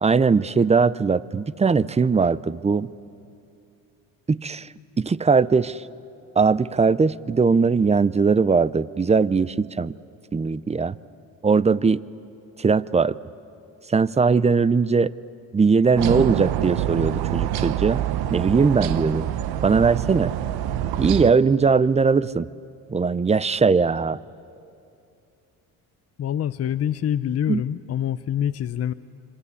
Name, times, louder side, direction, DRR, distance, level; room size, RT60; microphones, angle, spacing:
voice 1, 0.0-2.9 4.3-4.7 5.0-5.8 6.4-9.9 10.3-11.0 11.4-12.0 12.6-13.2 13.9-15.1 15.5-18.0 18.3-19.3 19.6-20.3 21.0-22.5 22.9-24.2 27.5-27.6, right 5 dB, 20° right, 19 dB, 0.5 m, -20 dB
sound 1, 16.0-21.3, right 12 dB, 85° right, 0.9 m, -26 dB
voice 2, 26.2-28.9, left 10 dB, 45° left, 12 dB, 0.7 m, -25 dB
26.0 x 25.0 x 8.4 m, 2.7 s
cardioid pair, 85°, 36 cm